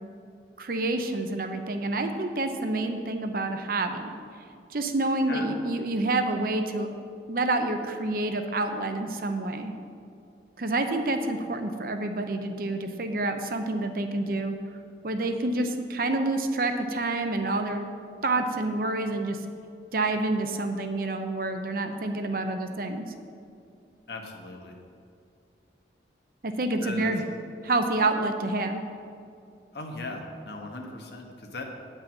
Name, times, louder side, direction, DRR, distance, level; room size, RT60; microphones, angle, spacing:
voice 1, 0.6-4.1 4.7-6.9 7.3-9.7 10.6-14.6 15.0-17.9 18.2-19.4 19.9-23.1 26.4-27.2 27.6-28.8, right 2 dB, 55° right, 6 dB, 0.7 m, -28 dB
voice 2, 24.1-24.8 26.8-27.1 29.7-31.6, left 2 dB, 70° left, 2 dB, 1.2 m, -38 dB
9.0 x 5.5 x 7.2 m, 2.4 s
head